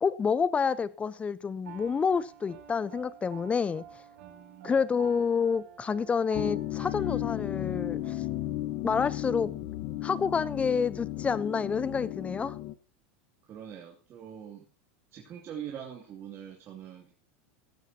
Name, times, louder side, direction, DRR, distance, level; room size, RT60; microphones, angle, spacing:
voice 1, 0.0-3.8 4.6-8.2 8.8-9.5 10.0-12.6, left 6 dB, 20° left, 0.8 m, -28 dB
Piano, 1.6-8.5, right 10 dB, 80° right, 4.2 m, -50 dB
voice 2, 4.2-4.8 13.4-14.7 15.1-17.1, right 9 dB, 40° right, 2.8 m, -43 dB
sound 1, 6.3-12.7, left 15 dB, 55° left, 1.4 m, -34 dB
17.0 x 13.5 x 2.9 m
supercardioid pair, 120°, 7 cm